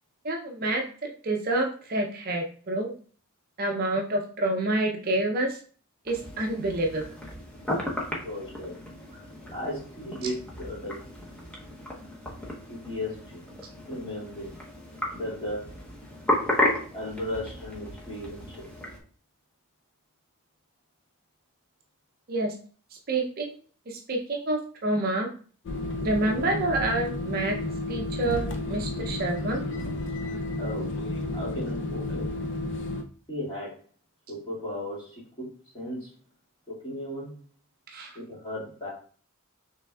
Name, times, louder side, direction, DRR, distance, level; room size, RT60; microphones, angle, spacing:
voice 1, 0.2-0.8 1.2-2.9 3.6-5.6 6.1-7.0 22.3-22.5 23.1-23.5 23.9-25.3 26.0-27.6 27.9-29.6 37.9-38.1, right 2 dB, 45° right, 1 dB, 0.6 m, -28 dB
sound 1, 6.0-19.0, left 1 dB, 5° left, 0.8 m, -34 dB
voice 2, 8.1-8.8 9.5-11.0 12.7-13.4 13.9-14.5 15.1-15.7 16.9-18.7 30.6-30.9 31.3-32.3 33.3-33.8 34.3-36.1 36.7-37.3 38.2-38.9, left 1 dB, 25° left, -7 dB, 2.0 m, -36 dB
sound 2, 25.6-33.0, left 2 dB, 55° left, 0.5 m, -32 dB
5.7 x 3.4 x 2.3 m, 0.43 s
head